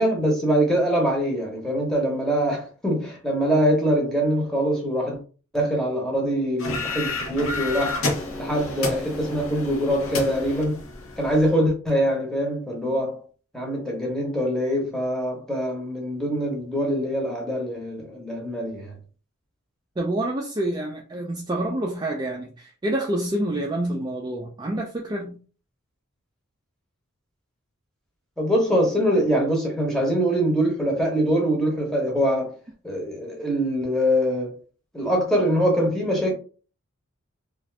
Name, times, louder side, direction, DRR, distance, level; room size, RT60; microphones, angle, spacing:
voice 1, 0.0-5.2 5.5-8.0 8.4-10.8 11.2-13.2 13.5-19.0 28.4-32.5 32.8-34.5 34.9-36.3, equal, ahead, 0.8 m, -23 dB
sound 1, 6.6-11.5, left 3 dB, 75° left, 0.8 m, -30 dB
voice 2, 20.0-25.4, right 1 dB, 20° right, 0.3 m, -27 dB
2.5 x 2.4 x 3.3 m
head